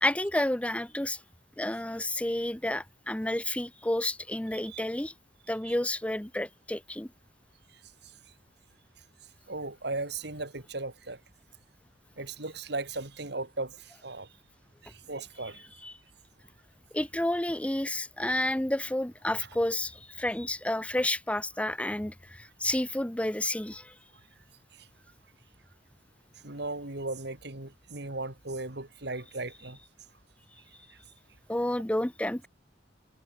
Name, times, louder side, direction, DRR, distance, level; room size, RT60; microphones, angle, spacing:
voice 1, 0.0-1.2 1.6-5.1 5.5-7.1 15.8-15.9 16.9-23.9 31.5-32.5, left 1 dB, 5° left, 0.7 m, -30 dB
voice 2, 9.5-11.2 12.2-14.3 14.8-15.6 24.8-24.9 26.4-29.8, right 2 dB, 65° right, 3.7 m, -37 dB
head